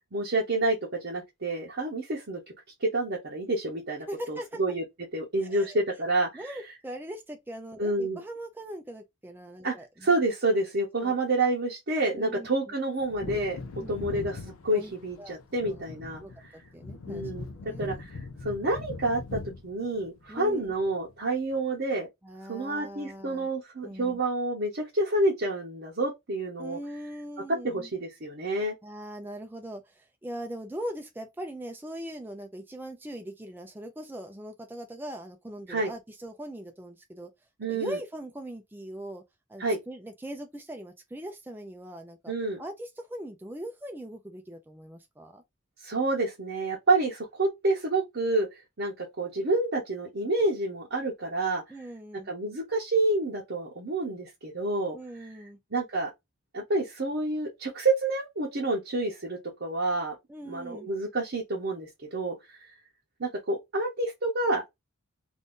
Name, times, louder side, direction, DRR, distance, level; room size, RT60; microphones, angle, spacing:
voice 1, 0.1-2.4 2.8-4.8 5.1-6.6 7.8-8.2 9.6-9.7 10.0-13.6 13.9-16.2 17.1-17.4 17.8-18.2 18.4-22.1 22.5-26.8 27.6-28.7 35.7-35.9 37.6-38.0 39.6-39.8 42.3-42.6 45.8-48.5 48.8-51.6 52.3-55.0 55.7-56.1 56.5-60.2 60.5-62.6 63.2-64.7, right 2 dB, 50° right, 0.8 m, -28 dB
voice 2, 4.1-4.8 5.4-5.8 6.3-10.1 11.0-11.1 12.2-12.7 13.8-14.2 14.7-14.9 15.2-15.4 15.6-15.8 16.2-17.3 17.6-18.0 20.3-20.7 22.2-23.5 23.8-24.2 26.6-27.9 28.8-37.3 37.7-39.2 39.5-42.3 42.6-45.4 51.7-52.3 54.9-55.6 60.3-60.9, right 1 dB, 10° right, 0.4 m, -41 dB
Wind / Thunder, 13.0-21.2 21.5-21.6, left 3 dB, 70° left, 0.5 m, -41 dB
2.6 x 2.5 x 3.6 m
head